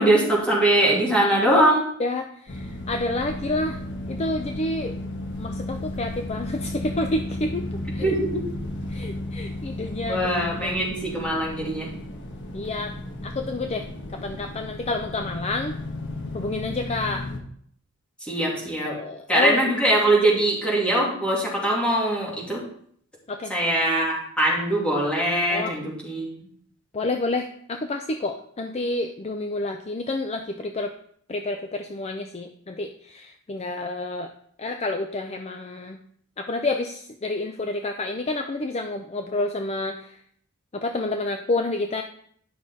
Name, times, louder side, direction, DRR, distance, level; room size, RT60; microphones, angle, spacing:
voice 1, 0.0-1.8 8.0-8.5 10.1-11.9 18.2-18.9 19.3-22.6 23.5-26.5, right 1 dB, 5° left, -4 dB, 2.5 m, -22 dB
voice 2, 2.0-3.8 4.1-5.0 5.4-8.2 8.9-10.3 10.6-10.7 12.5-13.0 13.2-13.9 14.2-15.7 16.3-17.2 18.9-19.7 23.3-23.5 25.5-25.7 26.9-30.9 31.3-34.3 34.6-36.0 36.4-40.1 40.7-42.0, left 2 dB, 30° left, 5 dB, 0.5 m, -29 dB
sound 1, 2.5-17.4, left 1 dB, 55° left, 1.2 m, -34 dB
11.0 x 6.0 x 4.1 m, 0.64 s
head